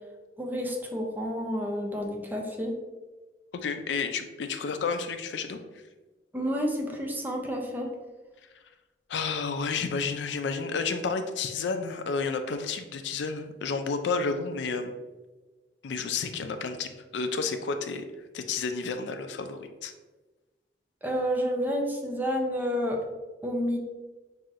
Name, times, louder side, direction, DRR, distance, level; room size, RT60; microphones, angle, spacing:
voice 1, 0.4-2.8 6.3-7.9 21.0-23.0 23.4-23.8, equal, 10° right, 0 dB, 0.5 m, -30 dB
voice 2, 3.5-5.6 9.1-14.9 15.8-18.0 18.3-19.9, left 4 dB, 80° left, 8 dB, 0.4 m, -31 dB
5.6 x 2.7 x 2.5 m, 1.2 s
head